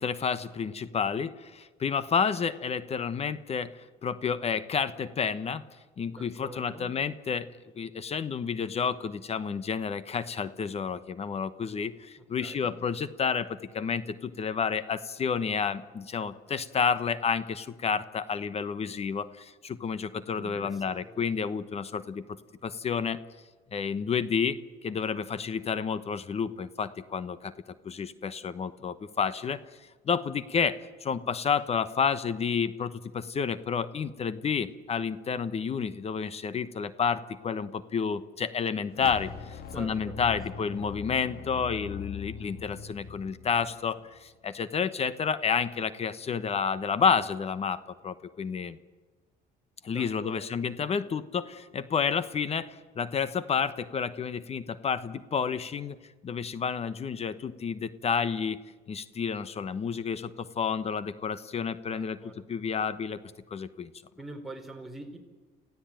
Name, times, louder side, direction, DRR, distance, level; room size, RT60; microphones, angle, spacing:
voice 1, 0.0-3.7 4.0-5.6 6.0-7.5 7.7-22.2 22.6-23.2 23.7-27.5 27.8-29.6 30.0-48.8 49.8-56.0 56.2-58.6 58.9-62.2 62.5-63.2 63.5-63.9, left 6 dB, 40° left, 14 dB, 1.1 m, -30 dB
voice 2, 6.1-7.0 12.4-12.8 20.4-21.2 39.7-40.7 49.9-50.6 61.9-62.5 64.2-65.2, right 2 dB, ahead, 2 dB, 4.2 m, -45 dB
sound 1, 38.9-44.3, left 6 dB, 65° left, 1.8 m, -42 dB
28.0 x 16.0 x 9.0 m, 1.4 s
cardioid pair, 110°, 17 cm